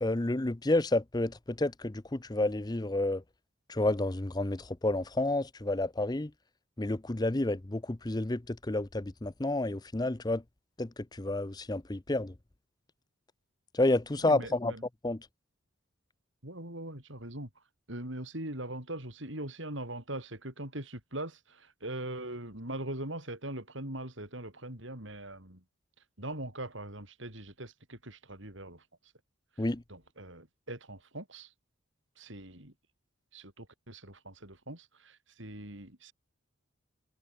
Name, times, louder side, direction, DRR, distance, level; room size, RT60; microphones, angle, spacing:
voice 1, 0.0-3.2 3.7-6.3 6.8-10.4 10.8-10.9 11.2-12.3 13.7-14.7 15.0-15.2 29.6-29.8, left 2 dB, 20° left, 0.6 m, -30 dB
voice 2, 14.2-14.8 16.4-25.6 26.2-29.1 29.6-31.5 32.2-32.7 33.3-36.1, right 1 dB, 65° right, 6.9 m, -41 dB
head